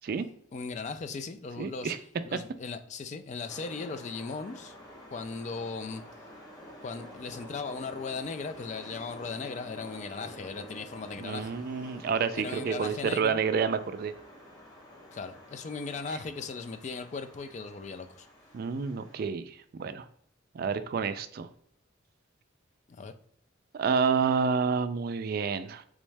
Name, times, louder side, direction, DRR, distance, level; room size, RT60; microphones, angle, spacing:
voice 1, 0.5-1.9 2.2-4.8 5.1-6.0 6.8-11.5 12.3-13.4 15.1-18.3 22.9-23.1, left 4 dB, 35° left, 9 dB, 0.3 m, -38 dB
voice 2, 1.6-2.0 11.2-14.1 16.1-16.2 18.5-20.1 20.5-21.5 23.7-25.8, right 6 dB, 50° right, 11 dB, 0.3 m, -29 dB
sound 1, 3.5-19.3, equal, 20° left, 0.8 m, -49 dB
3.5 x 3.1 x 3.2 m, 0.66 s
head